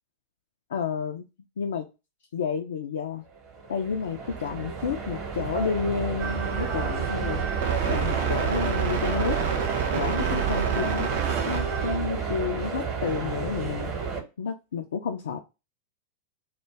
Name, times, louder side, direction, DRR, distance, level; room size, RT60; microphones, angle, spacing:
voice 1, 0.7-1.2 1.6-1.9 2.3-3.2 3.7-7.4 7.9-9.4 9.9-11.1 11.5-13.9 14.4-15.4, left 6 dB, 65° left, 0.3 m, -30 dB
sound 1, 3.3-14.2, right 5 dB, 35° right, 0.9 m, -31 dB
sound 2, 6.2-12.0, right 7 dB, 55° right, 0.5 m, -28 dB
2.2 x 2.1 x 3.2 m
figure-of-eight pair, 90°, 0 cm